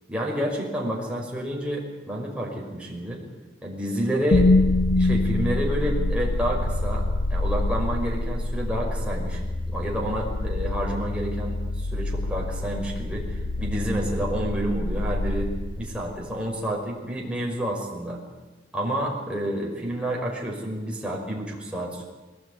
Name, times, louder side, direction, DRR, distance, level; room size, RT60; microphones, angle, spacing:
voice 1, 0.1-3.2 3.6-4.5 5.0-7.0 7.3-9.4 9.7-15.5 15.8-18.2 18.7-22.1, equal, 5° right, -2 dB, 5.4 m, -29 dB
sound 1, 4.3-16.4, left 2 dB, 85° left, 0.9 m, -26 dB
22.0 x 19.0 x 9.7 m, 1.2 s
head